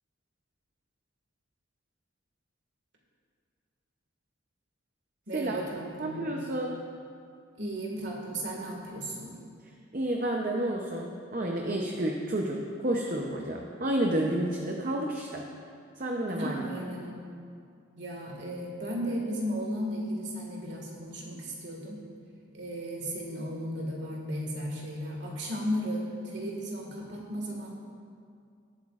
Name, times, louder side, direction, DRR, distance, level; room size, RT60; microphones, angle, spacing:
voice 1, 5.3-6.3 7.6-9.3 16.4-17.2 18.0-22.0 22.5-27.7, equal, 60° right, -2 dB, 1.9 m, -35 dB
voice 2, 6.0-6.8 9.9-15.4 16.0-16.6, right 1 dB, 40° right, 0 dB, 0.7 m, -30 dB
19.0 x 8.1 x 2.5 m, 2.3 s
head